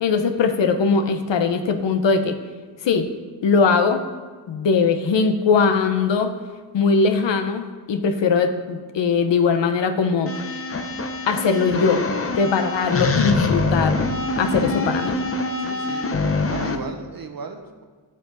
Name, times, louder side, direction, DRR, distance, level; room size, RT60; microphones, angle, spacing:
voice 1, 0.0-2.4 2.8-3.1 3.4-4.0 4.5-6.3 6.7-10.4 11.3-12.0 12.4-13.9 14.4-15.2, left 5 dB, 75° left, 7 dB, 0.9 m, -20 dB
sound 1, 10.3-16.8, left 3 dB, 30° left, 0.8 m, -24 dB
voice 2, 15.6-16.1 16.5-17.8, right 4 dB, 50° right, 5 dB, 1.1 m, -36 dB
9.0 x 7.6 x 4.0 m, 1.4 s
cardioid pair, 70°, 44 cm